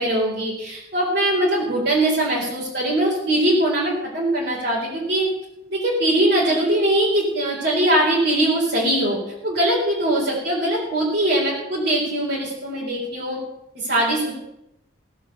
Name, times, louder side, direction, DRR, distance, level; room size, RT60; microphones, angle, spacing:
voice 1, 0.0-5.3 5.7-9.2 9.4-13.4 13.8-14.3, right 1 dB, 60° right, -5 dB, 3.8 m, -21 dB
17.0 x 7.1 x 6.7 m, 0.85 s
head